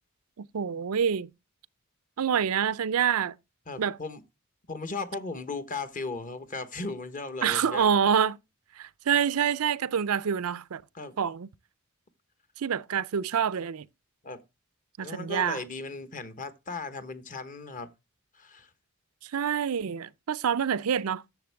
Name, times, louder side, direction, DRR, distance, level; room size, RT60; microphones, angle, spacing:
voice 1, 0.4-1.3 2.2-3.3 3.8-4.0 7.4-8.4 8.8-10.8 11.2-11.5 12.6-13.9 15.0-15.6 19.3-21.2, right 7 dB, 90° right, 0.5 m, -26 dB
voice 2, 3.7-4.2 4.7-7.9 10.9-11.1 14.2-14.4 15.0-17.9 18.3-18.7, left 3 dB, 40° left, 1.1 m, -36 dB
10.5 x 7.2 x 3.4 m
head